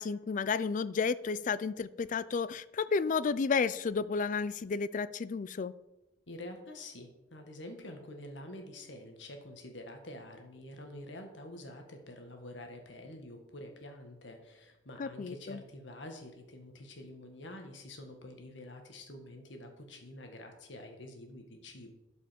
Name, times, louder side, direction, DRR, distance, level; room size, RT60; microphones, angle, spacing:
voice 1, 0.0-5.7 15.0-15.6, left 5 dB, 45° left, 17 dB, 0.4 m, -32 dB
voice 2, 6.3-21.9, left 1 dB, 75° left, 4 dB, 1.8 m, -47 dB
12.0 x 5.4 x 5.2 m, 0.95 s
head